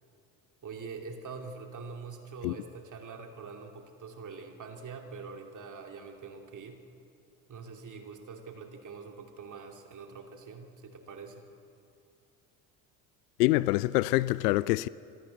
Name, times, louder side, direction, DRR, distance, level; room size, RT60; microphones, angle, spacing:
voice 1, 0.6-6.8 7.5-11.4, right 5 dB, 35° right, 2.8 m, -44 dB
voice 2, 13.4-14.9, left 18 dB, 65° left, 0.6 m, -25 dB
26.5 x 14.0 x 8.0 m
figure-of-eight pair, 65°, 50 cm